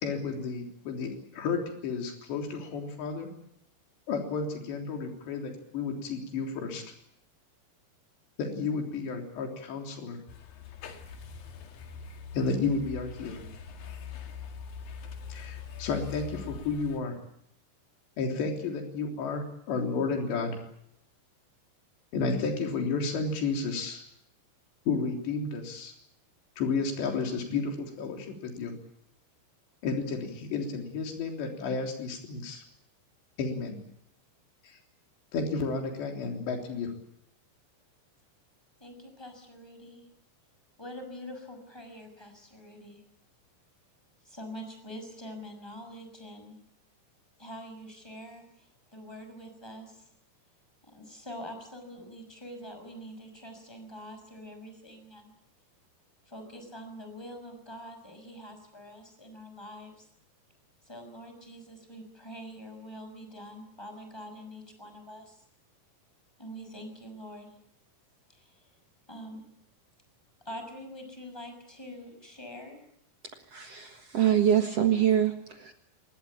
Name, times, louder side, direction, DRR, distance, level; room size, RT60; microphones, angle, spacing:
voice 1, 0.0-3.3 4.1-6.8 8.4-10.2 12.3-13.4 15.3-17.2 18.2-20.6 22.1-24.0 24.9-25.9 26.6-28.7 29.8-32.6 33.4-33.8 34.6-34.8 35.3-36.9, left 4 dB, 75° left, 3 dB, 5.7 m, -32 dB
sound 1, 10.3-17.0, left 7 dB, 60° left, 3.6 m, -43 dB
voice 2, 38.8-40.0 40.8-43.0 44.2-46.5 47.4-50.1 50.8-55.3 56.3-60.1 60.8-65.4 66.4-67.6 68.3-68.7 69.1-69.4 70.4-72.8, equal, 5° left, 6 dB, 5.9 m, -45 dB
voice 3, 73.5-75.3 75.6-75.7, right 10 dB, 60° right, 6 dB, 1.7 m, -24 dB
25.5 x 20.5 x 8.6 m, 0.72 s
omnidirectional pair, 5.0 m